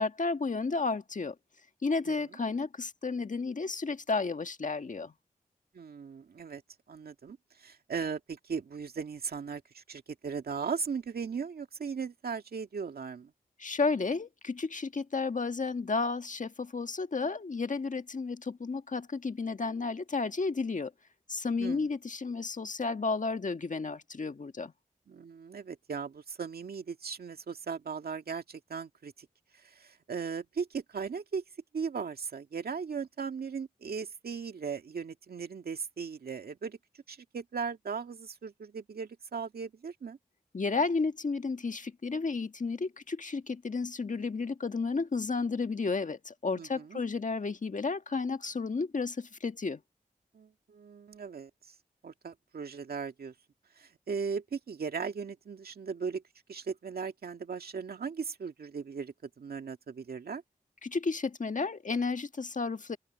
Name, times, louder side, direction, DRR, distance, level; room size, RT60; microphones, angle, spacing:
voice 1, 0.0-1.3 1.8-5.1 13.6-20.9 21.3-24.7 40.5-49.8 60.8-63.0, left 4 dB, 55° left, 1.6 m, -32 dB
voice 2, 5.7-6.6 6.9-13.3 21.6-21.8 25.1-29.3 29.5-31.4 31.7-36.8 37.1-40.2 46.5-47.0 50.3-51.5 52.0-53.3 53.8-56.2 56.5-60.4, right 5 dB, 90° right, 2.1 m, -38 dB
open air
cardioid pair, 45°, 15 cm